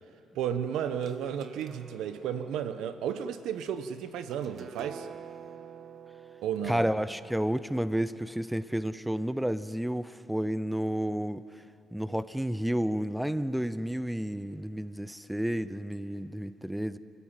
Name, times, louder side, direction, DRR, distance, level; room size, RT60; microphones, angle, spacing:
voice 1, 0.3-5.1 6.4-6.8, right 8 dB, 85° right, 10 dB, 1.1 m, -33 dB
sound 1, 0.8-8.5, right 7 dB, 60° right, 1.1 m, -49 dB
voice 2, 6.6-11.4 11.9-17.0, equal, 5° right, 14 dB, 0.7 m, -31 dB
29.5 x 14.0 x 9.0 m, 2.9 s
cardioid pair, 90°, 0 cm